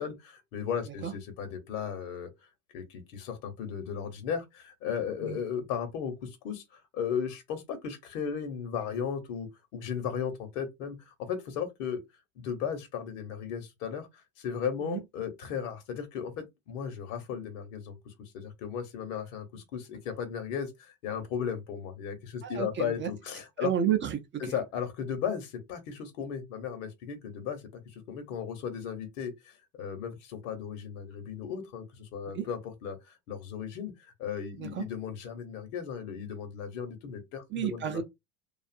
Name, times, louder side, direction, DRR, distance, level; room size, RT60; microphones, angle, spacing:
voice 1, 0.0-2.3 2.7-12.0 12.4-23.7 24.4-33.9 34.2-38.0, left 7 dB, 70° left, 1.0 m, -36 dB
voice 2, 22.4-23.1 23.6-24.4 32.3-32.5 34.6-34.8 37.5-38.0, right 9 dB, 30° right, 0.5 m, -31 dB
2.6 x 2.4 x 2.5 m
hypercardioid pair, 90°, 40 cm